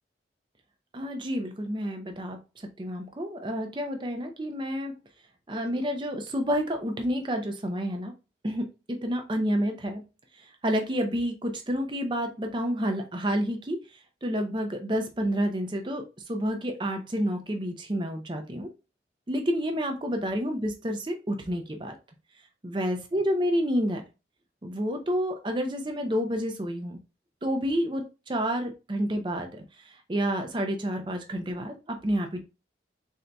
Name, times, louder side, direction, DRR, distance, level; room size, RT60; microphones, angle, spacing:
voice 1, 0.9-4.9 5.5-8.1 8.4-10.0 10.3-18.7 19.3-22.0 22.6-24.0 24.6-27.0 27.4-32.4, equal, 25° right, 5 dB, 0.6 m, -29 dB
3.9 x 2.7 x 3.4 m, 0.29 s
head